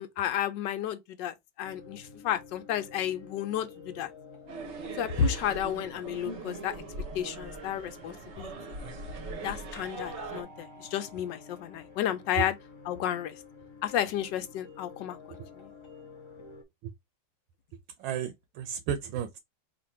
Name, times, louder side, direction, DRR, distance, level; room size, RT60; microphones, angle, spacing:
voice 1, 0.0-4.1 5.0-6.7 7.1-8.5 9.4-12.6 12.8-13.4 13.8-15.7, left 9 dB, 70° left, 1.3 m, -32 dB
sound 1, 1.6-16.6, left 4 dB, 35° left, 0.4 m, -50 dB
sound 2, 4.5-10.4, right 3 dB, 50° right, 0.8 m, -41 dB
voice 2, 18.0-19.4, right 8 dB, 85° right, 1.4 m, -33 dB
3.7 x 2.5 x 4.3 m
omnidirectional pair, 2.2 m